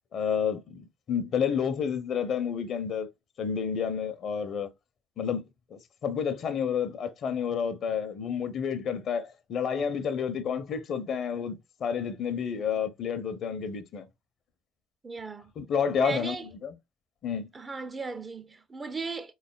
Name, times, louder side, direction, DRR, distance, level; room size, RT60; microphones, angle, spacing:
voice 1, 0.1-3.1 3.4-4.7 5.2-5.4 6.0-14.1 15.6-16.7 17.2-17.5, left 7 dB, 50° left, 0.7 m, -30 dB
voice 2, 15.0-15.5 16.0-16.5 17.5-19.3, right 4 dB, 25° right, 0.6 m, -36 dB
3.9 x 3.2 x 2.3 m
figure-of-eight pair, 50°, 0 cm